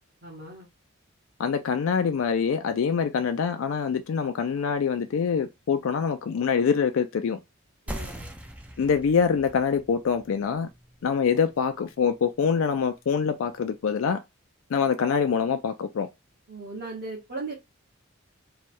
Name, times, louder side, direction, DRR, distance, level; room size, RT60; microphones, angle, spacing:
voice 1, 0.2-0.7 7.9-8.3 16.5-17.5, right 3 dB, 45° right, 1.2 m, -37 dB
voice 2, 1.4-7.4 8.8-10.7 11.0-14.2 14.7-16.1, left 6 dB, 65° left, 0.4 m, -25 dB
sound 1, 7.9-13.0, equal, 5° right, 0.4 m, -42 dB
3.2 x 2.3 x 4.3 m
head